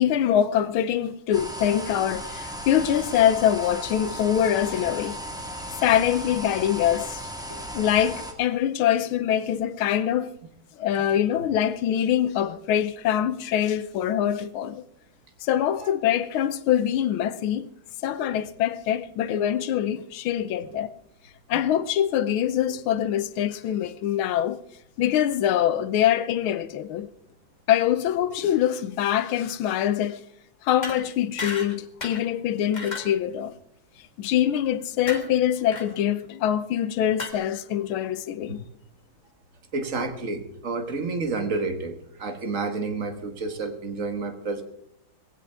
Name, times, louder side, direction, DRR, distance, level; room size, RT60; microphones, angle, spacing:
voice 1, 0.0-5.2 5.8-7.3 7.7-10.3 10.8-14.8 15.4-17.7 18.0-20.9 21.5-24.6 25.0-27.1 27.7-30.2 30.6-33.6 34.2-38.6, left 10 dB, 85° left, 1.6 m, -24 dB
sound 1, 1.3-8.3, equal, ahead, 1.5 m, -36 dB
sound 2, 30.8-31.0 31.4-31.8 32.0-32.2 32.7-33.1 35.1-35.3 35.7-35.8 37.2-37.3, left 3 dB, 25° left, 1.5 m, -33 dB
voice 2, 39.7-44.6, right 3 dB, 40° right, 1.7 m, -30 dB
19.0 x 16.0 x 3.5 m
omnidirectional pair, 2.2 m